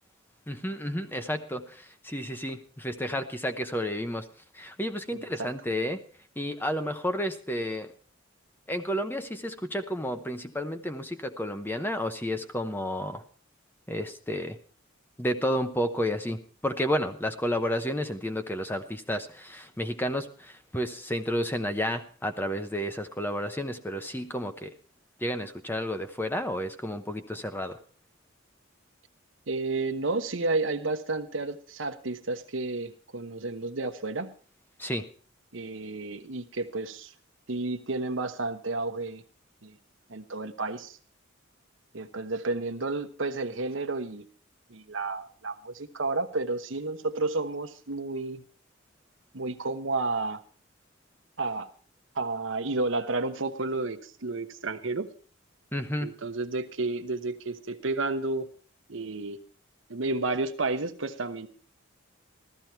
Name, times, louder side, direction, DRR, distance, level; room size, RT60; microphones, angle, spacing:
voice 1, 0.5-4.3 4.5-6.0 6.4-7.9 8.7-13.2 13.9-14.6 15.2-16.4 16.6-24.7 25.2-27.8 34.8-35.0 55.7-56.1, equal, 10° left, 8 dB, 0.9 m, -31 dB
voice 2, 5.1-5.5 29.5-34.3 35.5-37.1 37.5-39.2 39.6-39.7 40.1-41.0 41.9-44.3 44.7-48.4 49.3-50.4 51.4-51.7 52.1-55.1 56.0-58.5 58.9-59.4 59.9-61.5, right 3 dB, 70° right, 9 dB, 1.0 m, -31 dB
14.5 x 13.5 x 4.5 m, 0.40 s
head